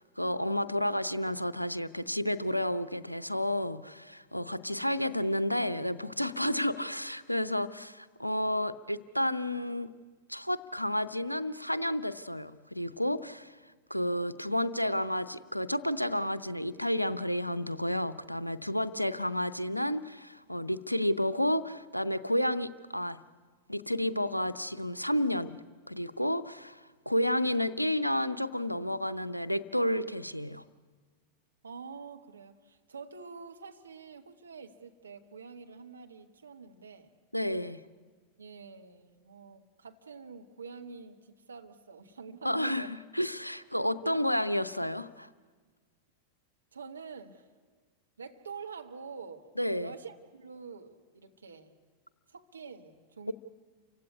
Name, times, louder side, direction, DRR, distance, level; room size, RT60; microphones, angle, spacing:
voice 1, 0.0-9.9 10.3-13.6 13.9-23.2 23.7-25.6 25.9-26.8 27.1-30.6 37.3-37.8 42.4-45.3 49.6-49.9, left 1 dB, 90° left, 15 dB, 0.6 m, -31 dB
voice 2, 13.9-14.4 19.1-19.2 31.6-37.1 38.4-42.9 44.0-44.2 46.7-47.5 48.2-49.5 49.8-51.7 52.3-53.3, right 5 dB, 75° right, 4 dB, 1.5 m, -47 dB
28.5 x 16.0 x 9.7 m, 1.5 s
figure-of-eight pair, 90°, 0 cm